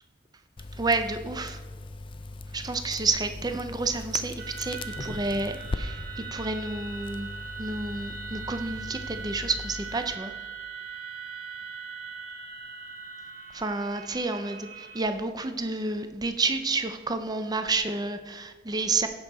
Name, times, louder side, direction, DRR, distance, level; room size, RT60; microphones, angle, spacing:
Crackle, 0.6-10.2, left 2 dB, 25° left, 0.4 m, -39 dB
voice 1, 0.8-1.6 2.5-7.3 7.6-10.3 13.5-19.1, right 3 dB, 20° right, 8 dB, 0.6 m, -30 dB
sound 1, 4.4-15.0, right 5 dB, 45° right, 1.4 m, -41 dB
16.0 x 5.5 x 4.2 m, 1.3 s
head